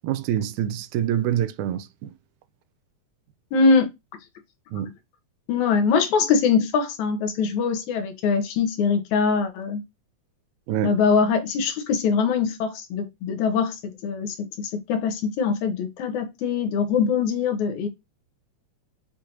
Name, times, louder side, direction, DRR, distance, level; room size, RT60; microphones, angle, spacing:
voice 1, 0.0-2.1 4.7-4.9 10.7-10.9, right 11 dB, 85° right, 1.9 m, -26 dB
voice 2, 3.5-3.9 5.5-9.8 10.8-17.9, left 5 dB, 80° left, 2.3 m, -23 dB
6.6 x 2.5 x 2.8 m
omnidirectional pair, 3.3 m